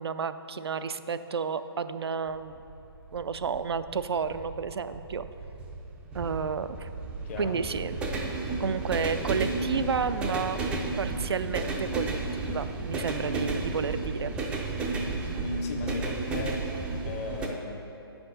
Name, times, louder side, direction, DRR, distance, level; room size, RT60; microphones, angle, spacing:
voice 1, 0.0-2.6 3.1-5.2 6.1-6.9 7.4-8.0 8.6-10.6 11.0-14.3, right 5 dB, 80° right, 12 dB, 0.4 m, -31 dB
sound 1, 2.3-17.5, right 3 dB, 10° right, 0.4 m, -33 dB
voice 2, 7.2-7.6 15.4-16.6 17.0-17.8, left 2 dB, 35° left, 3 dB, 0.8 m, -35 dB
8.9 x 5.8 x 4.0 m, 2.9 s
hypercardioid pair, 145°, 13 cm